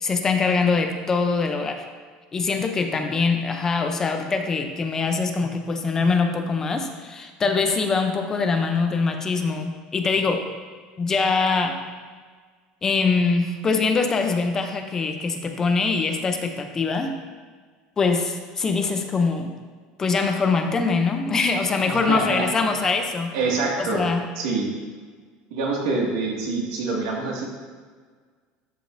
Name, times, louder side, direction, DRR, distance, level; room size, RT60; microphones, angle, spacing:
voice 1, 0.0-1.9 2.3-10.5 11.0-11.8 12.8-17.2 18.0-19.5 20.0-23.3 23.8-24.2, left 4 dB, 20° left, 5 dB, 0.4 m, -23 dB
voice 2, 21.9-22.4 23.3-24.0 24.3-24.7 25.5-27.5, right 3 dB, 90° right, -2 dB, 1.8 m, -25 dB
12.5 x 5.1 x 2.5 m, 1.5 s
cardioid pair, 175°, 3 cm